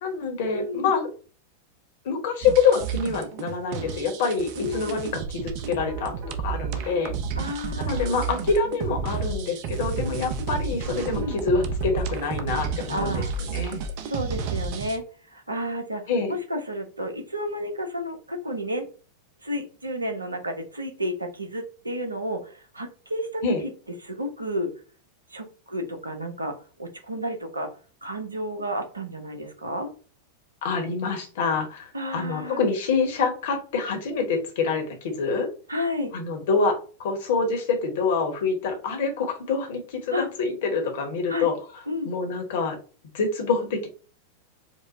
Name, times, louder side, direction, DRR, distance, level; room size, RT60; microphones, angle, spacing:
voice 1, 0.0-1.1 2.0-6.1 6.4-7.1 7.8-13.8 16.1-16.4 23.4-23.6 30.6-35.5 36.1-41.5 42.0-42.8 43.1-43.9, left 4 dB, 55° left, 4 dB, 1.0 m, -26 dB
voice 2, 0.5-0.9 4.6-5.0 7.4-8.2 11.1-11.4 12.9-13.3 14.0-18.9 19.4-23.4 24.0-24.7 25.3-27.7 28.0-29.9 31.9-32.6 35.7-36.1 40.1-40.3 41.3-41.5 41.9-42.1, equal, 80° right, 5 dB, 0.8 m, -31 dB
sound 1, 2.4-15.0, right 5 dB, 45° right, 0.6 m, -31 dB
4.6 x 2.1 x 2.6 m, 0.38 s
figure-of-eight pair, 90°, 0 cm